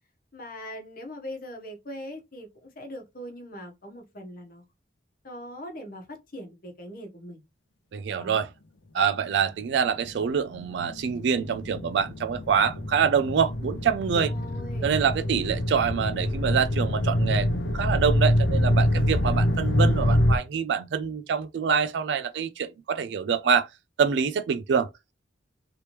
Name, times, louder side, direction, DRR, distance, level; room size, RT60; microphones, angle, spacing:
voice 1, 0.3-4.6 5.2-7.4 8.2-8.4 14.1-14.9, equal, 50° left, 1.0 m, -41 dB
voice 2, 7.9-8.5 8.9-14.3 14.8-17.5 17.7-23.7 24.0-24.9, right 7 dB, 65° right, 0.3 m, -25 dB
sound 1, 10.0-20.4, left 1 dB, 80° left, 0.6 m, -25 dB
3.3 x 3.0 x 2.9 m
head